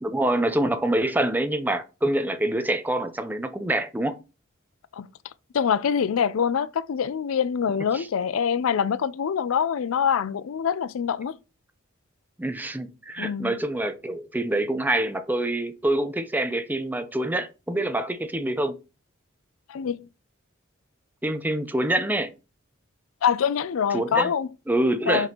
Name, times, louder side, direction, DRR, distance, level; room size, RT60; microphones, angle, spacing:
voice 1, 0.0-4.2 7.9-8.1 12.4-18.8 21.2-22.3 23.9-24.3 24.7-25.3, right 1 dB, 10° right, 0.5 m, -26 dB
voice 2, 5.5-11.3 13.2-13.6 19.7-20.1 23.2-24.5 25.1-25.3, left 7 dB, 75° left, 0.4 m, -25 dB
6.5 x 5.2 x 2.9 m
head